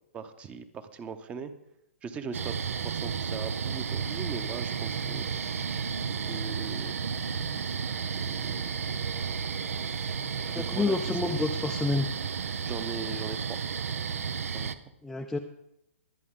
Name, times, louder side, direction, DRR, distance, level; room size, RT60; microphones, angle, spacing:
voice 1, 0.1-1.5 2.0-2.5 2.8-5.3 6.3-7.0 8.1-8.7 10.5-11.2 12.6-13.6 14.5-14.8, right 5 dB, 15° right, 11 dB, 0.9 m, -40 dB
sound 1, 2.3-14.7, right 6 dB, 80° right, 0.7 m, -32 dB
voice 2, 10.4-12.1 15.0-15.4, left 3 dB, 5° left, 2 dB, 0.5 m, -29 dB
22.5 x 8.4 x 3.8 m, 0.78 s
hypercardioid pair, 145°, 7 cm